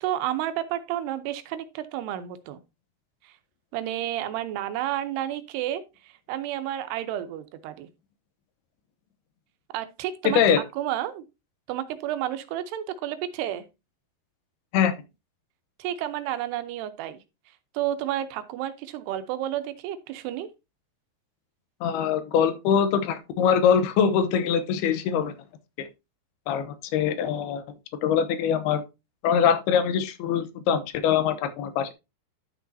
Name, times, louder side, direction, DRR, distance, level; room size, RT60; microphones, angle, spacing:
voice 1, 0.0-2.6 3.2-3.3 3.7-7.9 9.7-10.4 10.8-11.2 11.7-13.7 15.8-17.2 17.7-20.5, right 12 dB, 90° right, 2.9 m, -31 dB
voice 2, 10.2-10.6 14.7-15.0 21.8-25.3 25.8-25.9 26.5-27.6 28.0-28.8 29.2-31.9, left 7 dB, 80° left, 2.8 m, -23 dB
11.5 x 6.2 x 2.7 m
omnidirectional pair, 4.6 m